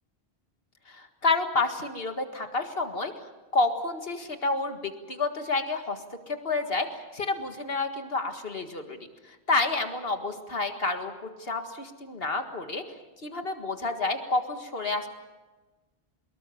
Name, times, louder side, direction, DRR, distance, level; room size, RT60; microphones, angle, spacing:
voice 1, 0.9-3.1 3.5-6.0 6.3-6.9 7.1-9.0 9.3-12.8 13.2-15.1, left 3 dB, 65° left, 6 dB, 2.0 m, -29 dB
24.0 x 21.5 x 7.1 m, 1.2 s
omnidirectional pair, 1.1 m